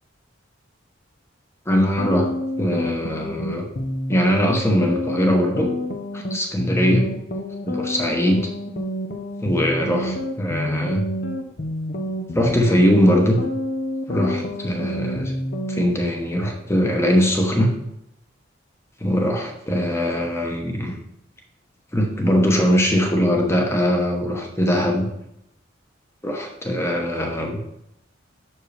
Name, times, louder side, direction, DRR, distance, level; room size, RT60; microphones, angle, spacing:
voice 1, 1.7-2.3 2.6-3.6 4.1-5.7 6.1-7.0 7.7-8.5 9.4-11.0 12.3-13.4 14.1-15.3 15.7-17.7 19.0-20.9 21.9-25.1 26.2-27.6, equal, 15° left, 1 dB, 1.1 m, -21 dB
sound 1, 1.9-15.9, left 1 dB, 55° left, 0.8 m, -28 dB
7.5 x 6.2 x 3.3 m, 0.79 s
head